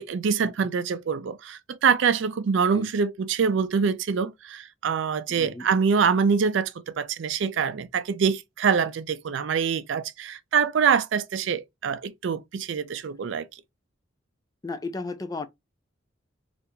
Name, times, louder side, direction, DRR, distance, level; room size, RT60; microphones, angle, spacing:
voice 1, 0.0-13.5, right 6 dB, 70° right, 0.4 m, -25 dB
voice 2, 5.3-5.7 14.6-15.5, left 3 dB, 20° left, 0.3 m, -34 dB
2.8 x 2.5 x 3.4 m
head